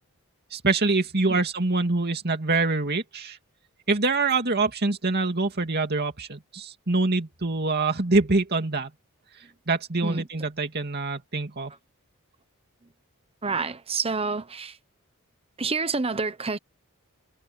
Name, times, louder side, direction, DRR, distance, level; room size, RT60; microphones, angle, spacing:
voice 1, 0.5-3.4 3.9-8.9 9.7-11.7, right 3 dB, 50° right, 2.4 m, -25 dB
voice 2, 13.4-14.8 15.6-16.6, right 4 dB, 25° right, 1.0 m, -28 dB
head